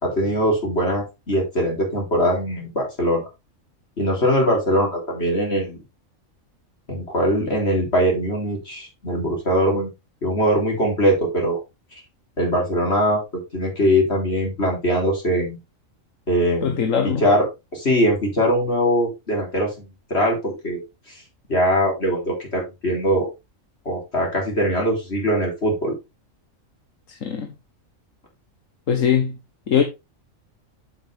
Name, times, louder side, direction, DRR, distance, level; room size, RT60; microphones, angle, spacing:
voice 1, 0.0-3.2 4.0-5.8 6.9-9.9 10.2-11.6 12.4-13.2 13.5-15.6 16.3-16.8 17.0-20.8 21.1-21.2 21.5-23.3 23.9-25.9, equal, 50° left, 4.3 m, -21 dB
voice 2, 16.6-17.2 27.1-27.5 28.9-29.4 29.7-29.8, left 8 dB, 75° left, 1.5 m, -21 dB
7.9 x 7.5 x 3.4 m
omnidirectional pair, 1.4 m